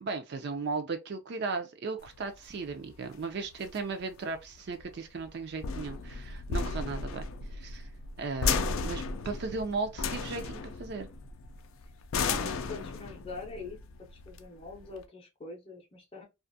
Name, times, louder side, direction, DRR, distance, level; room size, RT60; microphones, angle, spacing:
voice 1, 0.0-7.2 7.5-7.9 8.2-11.1, right 4 dB, 50° right, 0.4 m, -36 dB
sound 1, 2.0-15.0, left 4 dB, 75° left, 0.4 m, -35 dB
voice 2, 12.2-13.8 14.1-16.2, left 3 dB, 25° left, 0.6 m, -43 dB
2.5 x 2.3 x 2.6 m
head